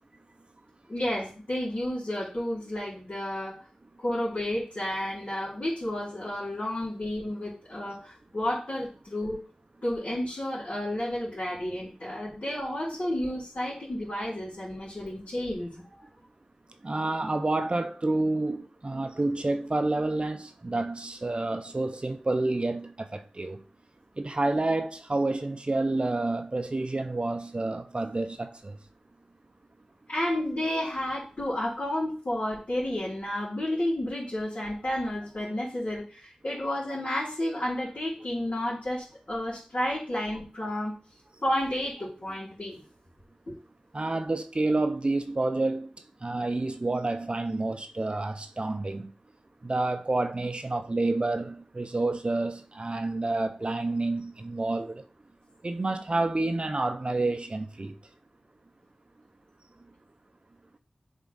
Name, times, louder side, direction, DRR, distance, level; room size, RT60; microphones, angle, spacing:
voice 1, 0.9-3.6 4.0-9.4 9.8-16.1 30.1-40.9 41.4-42.8 43.5-43.6, left 1 dB, 60° left, 3.0 m, -31 dB
voice 2, 16.8-23.6 24.2-28.8 43.9-45.9 46.2-49.1 49.6-55.0 55.6-58.0, right 2 dB, 45° right, 0.6 m, -29 dB
7.1 x 3.6 x 3.9 m
cardioid pair, 45°, 3 cm